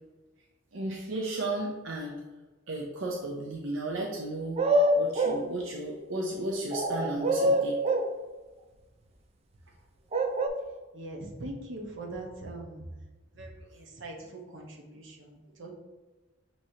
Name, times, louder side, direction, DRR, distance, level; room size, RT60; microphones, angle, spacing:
voice 1, 0.7-2.2 2.7-4.6 5.0-7.8, right 2 dB, 90° right, -1 dB, 0.6 m, -34 dB
sound 1, 4.6-5.4 6.7-8.1 10.1-10.5, right 1 dB, 30° right, 0.4 m, -25 dB
voice 2, 10.9-12.8 13.3-15.7, right 2 dB, 70° right, -1 dB, 0.9 m, -42 dB
6.2 x 3.0 x 2.8 m, 1.2 s
head